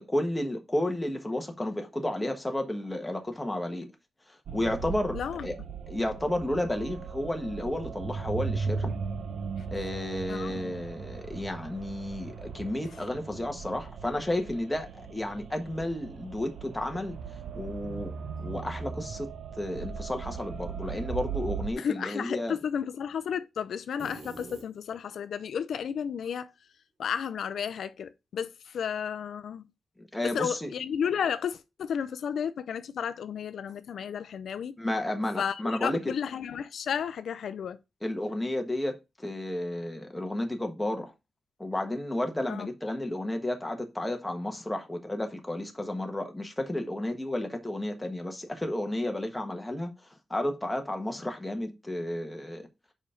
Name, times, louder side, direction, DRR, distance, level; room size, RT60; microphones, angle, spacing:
voice 1, 0.0-3.9 4.5-5.6 5.9-8.9 9.7-17.2 17.6-18.1 18.4-22.6 30.0-30.7 34.8-36.1 38.0-41.1 41.6-49.9 50.3-52.7, left 1 dB, 10° left, 1.3 m, -32 dB
sound 1, 4.5-21.7, right 5 dB, 80° right, 0.7 m, -38 dB
voice 2, 5.1-5.5 10.3-10.7 21.8-26.5 27.0-29.6 30.3-34.8 35.4-37.8 42.5-42.7, left 7 dB, 80° left, 0.5 m, -33 dB
sound 2, 24.0-25.2, right 2 dB, 60° right, 2.7 m, -45 dB
5.1 x 4.9 x 5.6 m
wide cardioid pair, 150°, 0 cm